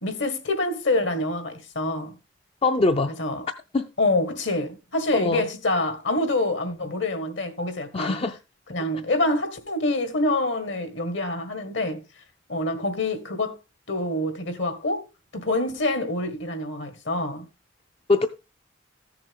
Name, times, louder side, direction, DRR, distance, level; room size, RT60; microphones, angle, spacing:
voice 1, 0.0-2.1 3.2-3.5 4.0-8.2 8.7-12.0 12.5-13.6 13.9-15.0 15.3-17.5, left 2 dB, 65° left, 1.7 m, -26 dB
voice 2, 2.6-3.1 3.7-3.9 5.1-5.5 7.9-8.4 18.1-18.3, left 3 dB, 30° left, 0.5 m, -22 dB
15.0 x 6.9 x 3.6 m
head